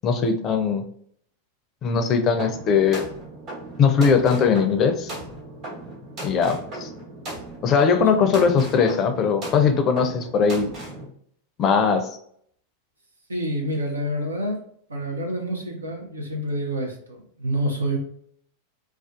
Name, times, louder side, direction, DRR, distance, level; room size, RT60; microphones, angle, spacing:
voice 1, 0.0-0.8 1.8-3.0 3.8-5.1 6.2-6.9 7.6-10.7 11.6-12.1, left 6 dB, 35° left, 7 dB, 0.4 m, -20 dB
sound 1, 2.4-11.0, right 2 dB, 45° right, 1.0 m, -37 dB
voice 2, 13.3-14.6 14.9-18.0, right 1 dB, 85° right, 1 dB, 0.6 m, -28 dB
2.5 x 2.3 x 2.3 m, 0.65 s
hypercardioid pair, 95°, 0 cm